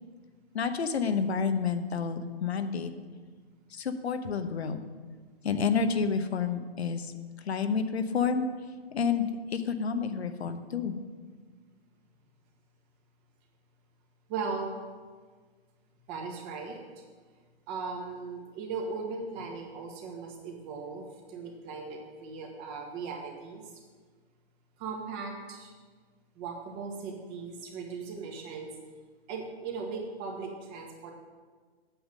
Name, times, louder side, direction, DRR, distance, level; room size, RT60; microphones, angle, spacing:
voice 1, 0.5-2.9 3.7-4.8 5.4-7.1 7.4-8.5 8.9-10.9, left 5 dB, 80° left, 8 dB, 1.0 m, -29 dB
voice 2, 14.3-14.7 16.1-16.8 17.7-21.0 21.3-23.6 24.8-25.7 26.4-28.7 29.3-31.1, right 4 dB, 30° right, 1 dB, 1.7 m, -38 dB
8.7 x 7.2 x 6.5 m, 1.5 s
hypercardioid pair, 135°, 32 cm